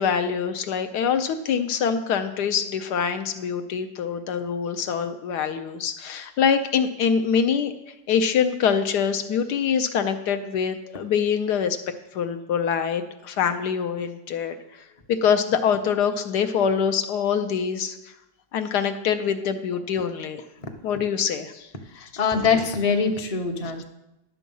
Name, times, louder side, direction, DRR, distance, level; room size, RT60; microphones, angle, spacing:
voice 1, 0.0-7.7 8.1-11.8 12.1-18.0 18.5-20.4 20.8-21.7 23.8-23.9, left 7 dB, 75° left, 8 dB, 1.2 m, -24 dB
voice 2, 21.9-23.8, left 5 dB, 25° left, 4 dB, 0.8 m, -23 dB
11.0 x 7.2 x 5.4 m, 0.92 s
omnidirectional pair, 1.9 m